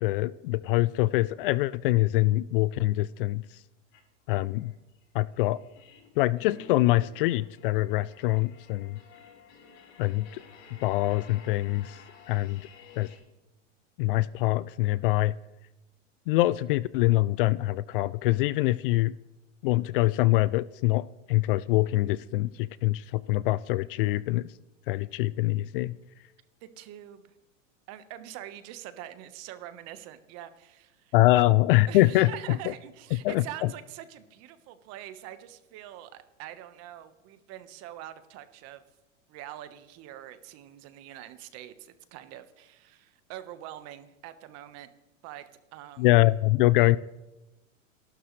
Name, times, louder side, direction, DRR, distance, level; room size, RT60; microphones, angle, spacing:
voice 1, 0.0-3.4 4.3-4.7 5.1-5.6 6.2-9.0 10.0-10.4 10.8-12.0 12.3-12.6 13.0-13.1 14.0-15.3 16.3-19.1 19.6-24.5 24.9-25.9 31.1-32.7 33.2-33.4 46.0-47.0, left 18 dB, 45° left, 19 dB, 0.4 m, -24 dB
sound 1, 3.9-4.0 4.5-13.2, left 6 dB, 70° left, 5.9 m, -52 dB
voice 2, 26.6-27.3 27.9-31.1 31.9-38.8 39.3-44.9 45.2-45.4 45.7-46.1, right 12 dB, 40° right, 11 dB, 1.3 m, -44 dB
28.0 x 12.0 x 3.2 m, 1.0 s
supercardioid pair, 135°, 38 cm